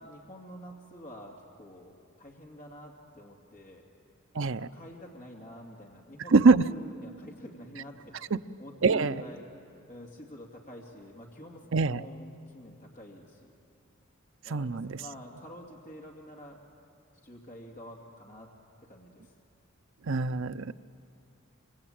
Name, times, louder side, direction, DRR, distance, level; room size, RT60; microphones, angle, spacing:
voice 1, 0.0-3.8 4.3-9.5 9.9-13.5 14.4-16.6 17.2-18.5 18.8-19.3, equal, 35° left, 0 dB, 2.5 m, -47 dB
voice 2, 4.3-4.7 6.3-6.7 8.8-9.1 11.7-12.0 14.5-15.0 20.0-20.7, right 4 dB, 65° right, 12 dB, 0.6 m, -23 dB
26.0 x 26.0 x 8.9 m, 2.6 s
head